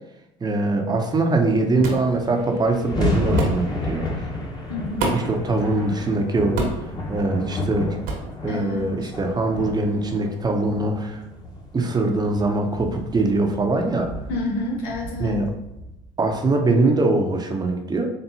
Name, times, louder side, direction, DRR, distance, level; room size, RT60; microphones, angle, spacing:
voice 1, 0.4-4.1 5.1-6.6 7.1-8.0 8.4-11.2 11.7-14.1 15.2-15.5 16.2-18.1, right 2 dB, 25° right, 3 dB, 0.7 m, -22 dB
sound 1, 1.7-1.8 2.0-16.4, left 1 dB, 25° left, 1.2 m, -31 dB
sound 2, 1.8-2.1 3.4-3.6 5.0-5.4 6.6-6.9 8.0-8.3, right 2 dB, 70° right, 1.1 m, -25 dB
voice 2, 4.7-5.0 8.5-9.0 14.3-15.5, left 2 dB, 85° left, -1 dB, 1.0 m, -28 dB
4.1 x 3.4 x 2.7 m, 0.91 s
supercardioid pair, 80°, 16 cm